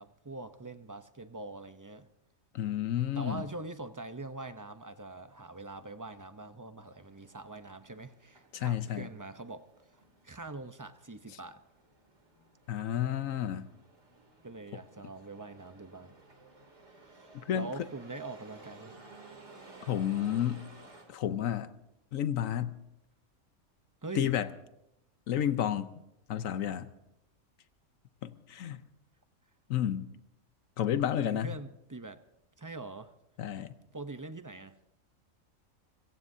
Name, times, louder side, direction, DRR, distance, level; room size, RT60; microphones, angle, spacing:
voice 1, 0.0-2.1 3.1-9.7 10.2-11.6 14.4-16.1 16.9-18.9 24.0-24.3 31.2-32.2 32.6-33.1 33.9-34.7, right 3 dB, 20° right, 9 dB, 0.5 m, -43 dB
voice 2, 2.5-3.4 8.5-9.1 12.7-13.7 17.3-17.7 19.9-20.7 21.1-21.7 22.1-22.8 24.1-24.5 25.3-25.9 26.3-26.9 28.2-28.8 29.7-30.1 30.8-31.5 33.4-33.7, left 10 dB, 85° left, 12 dB, 1.2 m, -31 dB
sound 1, 6.9-21.0, right 2 dB, 55° right, 3.2 m, -56 dB
29.5 x 17.0 x 2.7 m, 0.83 s
omnidirectional pair, 1.4 m